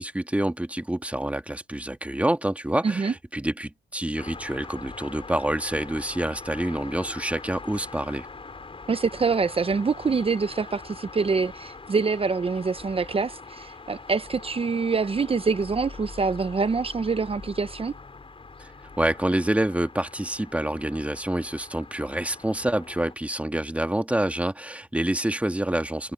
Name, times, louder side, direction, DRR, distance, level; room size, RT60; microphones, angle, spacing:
voice 1, 0.0-8.3 18.6-18.7 19.0-26.1, right 1 dB, 5° right, 2.1 m, -27 dB
voice 2, 2.8-3.1 8.9-17.9, right 4 dB, 30° right, 0.9 m, -25 dB
sound 1, 4.2-23.1, left 4 dB, 30° left, 5.9 m, -43 dB
cardioid pair, 90°, 20 cm